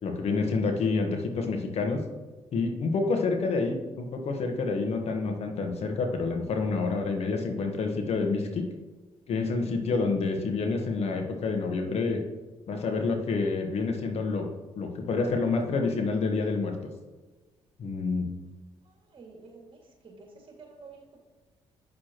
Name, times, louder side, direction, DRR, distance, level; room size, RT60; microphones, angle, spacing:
voice 1, 0.0-2.0 2.5-8.7 9.3-12.2 12.7-14.5 14.8-16.8 17.8-18.3, left 4 dB, 60° left, 4 dB, 1.2 m, -28 dB
voice 2, 18.8-21.2, right 4 dB, 45° right, 0 dB, 2.2 m, -50 dB
8.4 x 6.5 x 3.0 m, 1.2 s
supercardioid pair, 70°, 12 cm